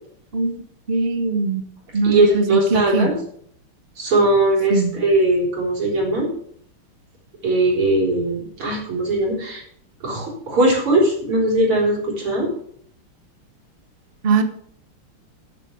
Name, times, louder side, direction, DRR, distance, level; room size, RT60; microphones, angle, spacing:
voice 1, 0.9-1.6 1.9-3.1 4.7-4.9 14.2-14.4, right 4 dB, 40° right, 9 dB, 0.9 m, -20 dB
voice 2, 2.0-3.1 4.0-6.3 7.4-9.6 10.0-12.5, right 2 dB, 90° right, -2 dB, 4.7 m, -19 dB
11.5 x 7.2 x 6.4 m, 0.64 s
omnidirectional pair, 2.3 m